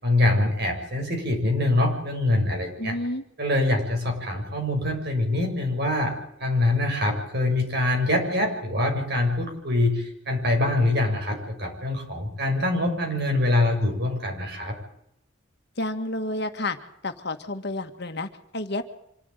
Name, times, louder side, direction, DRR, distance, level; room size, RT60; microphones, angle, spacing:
voice 1, 0.0-3.0 3.4-6.1 6.4-14.7, left 2 dB, 55° right, 2 dB, 6.8 m, -24 dB
voice 2, 2.8-3.2 15.8-16.8 17.0-18.8, left 2 dB, 60° left, 7 dB, 1.8 m, -30 dB
26.0 x 12.0 x 9.2 m, 0.76 s
head